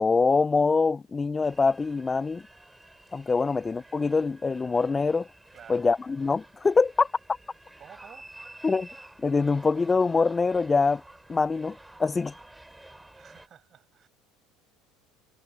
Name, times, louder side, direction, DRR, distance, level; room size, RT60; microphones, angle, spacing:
voice 1, 0.0-2.4 3.1-5.3 5.7-7.1 8.6-8.9 9.2-11.0 11.3-12.3, left 4 dB, 25° left, 0.4 m, -24 dB
sound 1, 1.4-13.5, right 1 dB, 10° right, 3.2 m, -51 dB
voice 2, 5.5-5.9 7.8-8.3 13.1-14.1, right 9 dB, 45° right, 7.9 m, -51 dB
hypercardioid pair, 80°, 0 cm